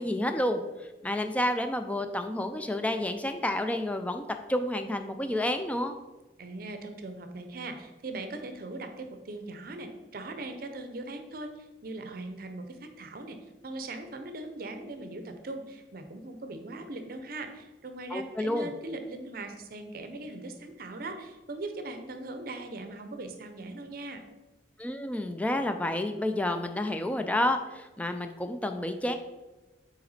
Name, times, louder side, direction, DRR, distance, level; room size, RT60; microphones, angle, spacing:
voice 1, 0.0-6.0 18.1-18.7 24.8-29.2, left 1 dB, 10° left, 7 dB, 0.4 m, -30 dB
voice 2, 6.4-13.4 13.6-24.2, right 2 dB, 55° right, 7 dB, 0.6 m, -40 dB
5.7 x 4.2 x 4.1 m, 1.1 s
head